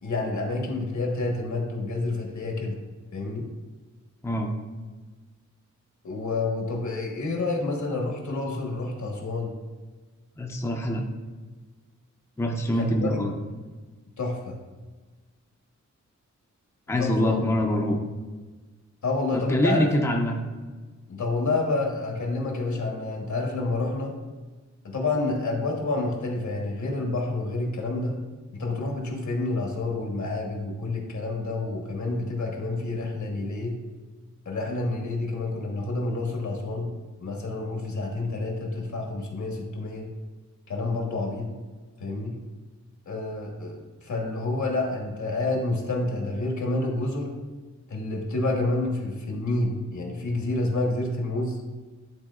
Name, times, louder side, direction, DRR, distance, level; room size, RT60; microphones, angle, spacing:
voice 1, 0.0-2.7 3.1-3.5 6.0-9.5 12.7-13.2 14.2-14.6 17.0-17.4 19.0-20.0 21.1-24.2 24.8-28.2 28.5-33.8 34.4-36.9 37.2-40.1 40.7-41.5 42.0-42.3 43.1-47.3 47.9-51.6, left 2 dB, 70° left, 1 dB, 1.3 m, -28 dB
voice 2, 10.4-11.0 12.4-13.3 16.9-18.0 19.3-20.4, equal, 10° left, 1 dB, 0.5 m, -24 dB
10.5 x 3.8 x 2.4 m, 1.3 s
wide cardioid pair, 165°, 30 cm